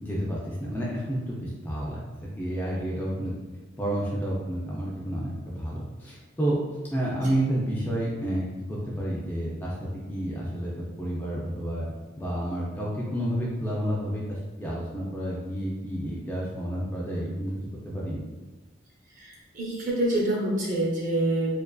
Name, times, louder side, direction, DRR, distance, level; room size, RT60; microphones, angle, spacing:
voice 1, 0.0-3.3 3.8-6.6 6.9-11.9 12.2-17.6 17.8-18.2, right 1 dB, 10° left, -6 dB, 0.3 m, -30 dB
voice 2, 19.2-21.6, right 1 dB, 40° right, -5 dB, 0.6 m, -26 dB
2.4 x 2.4 x 2.2 m, 1.2 s
head